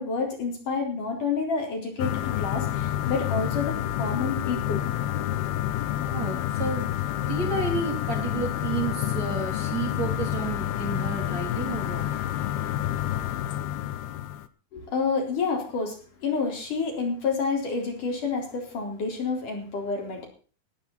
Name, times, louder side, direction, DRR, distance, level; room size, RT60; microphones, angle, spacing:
voice 1, 0.0-4.9 14.7-20.3, left 4 dB, 50° left, 2 dB, 5.2 m, -29 dB
sound 1, 2.0-14.5, left 12 dB, 75° left, 2.7 m, -28 dB
voice 2, 6.1-6.9 7.3-12.0, right 4 dB, 40° right, 2 dB, 4.4 m, -31 dB
19.0 x 10.5 x 4.1 m, 0.39 s
omnidirectional pair, 4.9 m